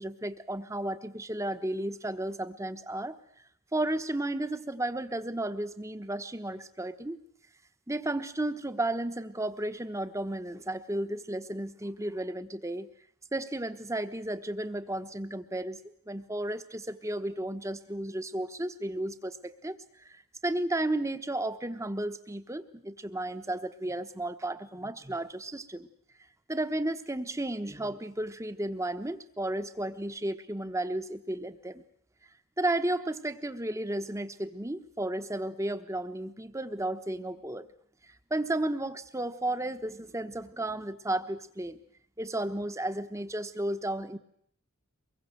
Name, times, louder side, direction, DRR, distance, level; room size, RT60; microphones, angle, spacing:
voice 1, 0.0-3.2 3.7-7.2 7.9-12.9 13.3-25.9 26.5-31.8 32.6-37.7 38.3-41.8 42.2-44.2, right 1 dB, 15° right, 11 dB, 1.2 m, -33 dB
24.5 x 22.0 x 7.9 m, 0.67 s
head